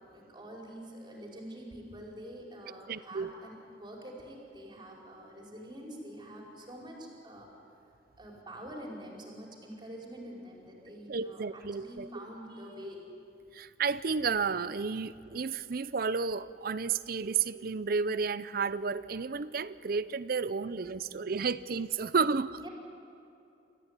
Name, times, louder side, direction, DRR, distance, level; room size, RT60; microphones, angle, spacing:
voice 1, 0.1-7.5 8.2-13.1 22.6-22.7, equal, 25° right, -1 dB, 4.9 m, -46 dB
voice 2, 2.9-3.3 11.1-12.2 13.5-22.6, right 5 dB, 55° right, 16 dB, 0.6 m, -32 dB
27.5 x 14.5 x 9.8 m, 2.7 s
head